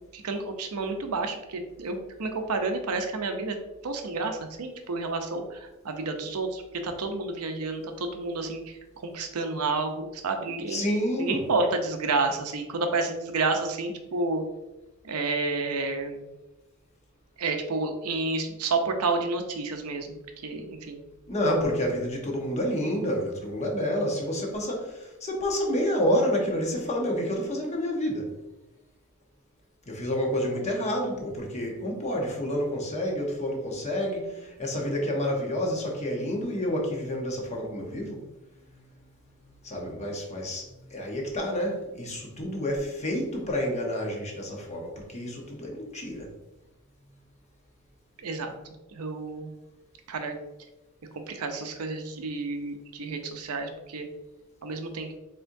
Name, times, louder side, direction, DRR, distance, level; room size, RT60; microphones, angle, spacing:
voice 1, 0.1-3.6 3.8-10.8 11.2-14.4 15.0-16.2 17.4-21.0 48.2-48.5 48.9-49.5 50.1-50.4 51.3-54.1 54.6-55.1, right 3 dB, 80° right, 5 dB, 0.6 m, -30 dB
voice 2, 10.5-11.4 21.3-28.3 29.9-38.9 39.4-46.3, equal, 30° left, 0 dB, 0.9 m, -29 dB
4.3 x 3.7 x 2.6 m, 1.0 s
head